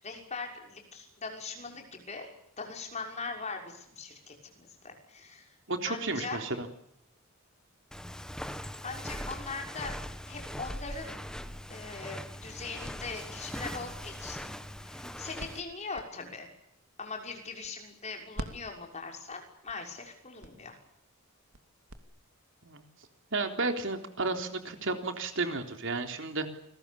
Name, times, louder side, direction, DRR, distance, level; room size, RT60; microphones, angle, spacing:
voice 1, 0.0-2.3 2.6-5.5 5.9-6.4 8.8-9.9 10.2-11.2 11.7-14.5 14.8-16.5 17.0-20.8, left 4 dB, 30° left, 2 dB, 6.3 m, -41 dB
voice 2, 5.7-6.7 22.6-22.8 23.3-26.6, right 3 dB, 60° right, 5 dB, 3.7 m, -32 dB
Walk footsteps, 7.9-15.6, equal, 5° left, 1.4 m, -41 dB
sound 1, 15.2-18.0 18.3-22.0, right 1 dB, 75° right, 2.7 m, -47 dB
29.0 x 21.5 x 7.2 m, 0.77 s
head